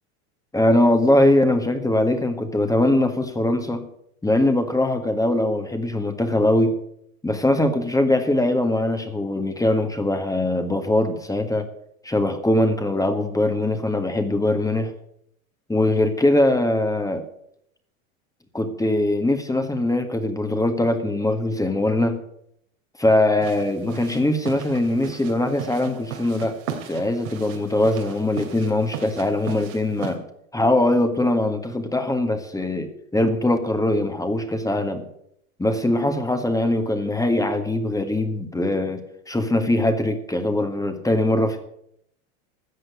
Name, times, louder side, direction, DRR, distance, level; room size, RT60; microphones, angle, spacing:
voice 1, 0.5-3.8 4.2-6.8 7.2-11.7 12.0-14.9 15.7-17.2 18.5-22.2 23.0-26.6 26.8-30.2 30.5-35.0 35.6-41.7, left 1 dB, 10° left, 7 dB, 1.8 m, -21 dB
sound 1, 23.4-30.2, right 8 dB, 70° right, 2.7 m, -37 dB
13.5 x 7.7 x 8.4 m, 0.73 s
hypercardioid pair, 90°, 41 cm